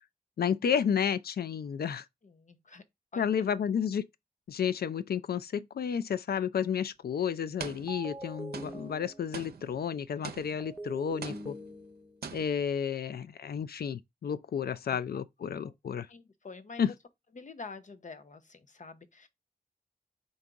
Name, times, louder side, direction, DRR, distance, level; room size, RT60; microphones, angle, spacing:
voice 1, 0.4-2.1 3.2-4.0 4.5-11.5 12.3-16.1 16.8-16.9, left 7 dB, 75° left, 0.4 m, -31 dB
voice 2, 2.2-2.8 3.1-3.5 14.9-15.2 15.6-15.7 16.1-16.9 17.4-19.3, left 4 dB, 50° left, 0.7 m, -47 dB
sound 1, 6.5-6.7 7.6-8.2 8.5-10.9 11.2-11.9 12.2-12.8, right 6 dB, 80° right, 0.6 m, -44 dB
sound 2, 7.9-9.6 10.6-12.3, right 1 dB, 10° right, 0.9 m, -43 dB
3.8 x 2.6 x 4.6 m
cardioid pair, 55°, 16 cm